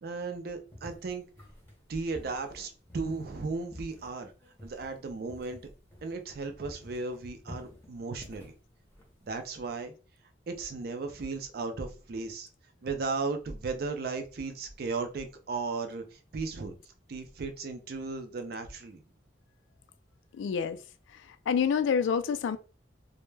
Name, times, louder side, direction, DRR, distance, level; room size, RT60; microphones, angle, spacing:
voice 1, 0.0-1.2 1.9-4.3 4.6-5.6 6.0-8.5 9.2-9.9 10.5-12.5 12.8-16.8 17.1-19.0, right 4 dB, 55° right, 0.4 m, -35 dB
sound 1, 0.7-6.4 6.6-9.5, left 1 dB, 10° left, 0.6 m, -51 dB
voice 2, 20.3-20.8 21.1-22.6, left 6 dB, 80° left, 0.3 m, -28 dB
2.1 x 2.1 x 3.1 m
head